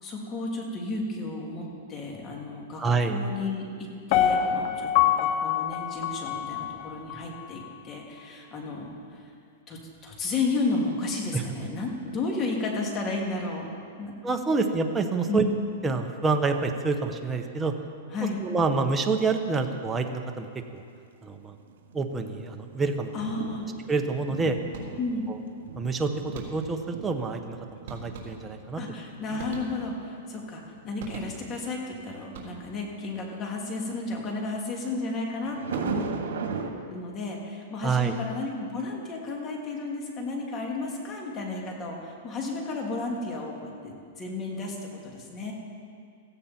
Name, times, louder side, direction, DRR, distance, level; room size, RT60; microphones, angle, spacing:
voice 1, 0.0-2.8 3.1-9.3 9.7-13.7 13.9-14.1 15.3-15.6 18.1-18.4 23.1-23.7 24.9-25.3 28.8-36.1 36.9-45.5, left 3 dB, 25° left, 0 dB, 2.8 m, -33 dB
voice 2, 2.8-3.2 11.3-11.4 14.2-15.4 15.8-17.7 18.4-20.5 20.7-20.8 21.2-21.6 21.9-23.1 23.9-24.6 25.3-25.4 25.7-28.8 37.8-38.1, right 4 dB, 10° right, 4 dB, 1.1 m, -27 dB
Piano, 4.1-7.2 7.6-7.7, left 10 dB, 45° left, 0.8 m, -25 dB
sound 1, 19.4-19.5 19.9-20.1 20.9-21.0 21.7-31.8 35.4-36.7, right 5 dB, 80° right, 2.0 m, -38 dB
sound 2, 24.7-25.3 26.3-26.9 27.9-28.7 29.4-30.1 31.0-31.7 32.2-32.9, right 4 dB, 55° right, 3.6 m, -42 dB
16.5 x 15.5 x 4.5 m, 2.4 s
hypercardioid pair, 145°, 0 cm